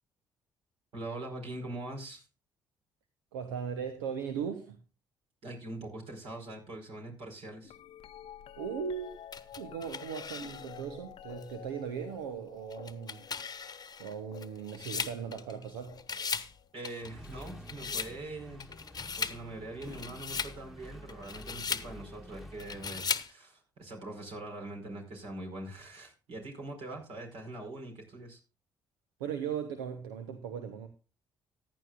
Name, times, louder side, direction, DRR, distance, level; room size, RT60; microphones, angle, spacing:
voice 1, 0.9-2.2 5.4-7.7 16.7-18.7 19.2-28.4, right 2 dB, 60° right, 2 dB, 4.8 m, -43 dB
voice 2, 3.3-4.8 8.6-9.1 9.6-13.2 14.0-16.0 29.2-30.9, right 7 dB, 80° right, 8 dB, 1.0 m, -38 dB
sound 1, 7.6-17.8 18.7-19.1 19.8-20.8 22.6-22.7, left 10 dB, 60° left, 0.7 m, -51 dB
sound 2, 9.3-10.9 11.4-11.5 12.7-15.7 16.0-16.5 16.8-18.1 18.6-19.4 19.8-20.6 21.1-21.9 22.6-23.3, left 5 dB, 35° left, 1.0 m, -37 dB
Accelerating revving vroom, 17.0-23.2, equal, ahead, 1.4 m, -49 dB
15.0 x 10.5 x 2.5 m, 0.32 s
hypercardioid pair, 45°, 11 cm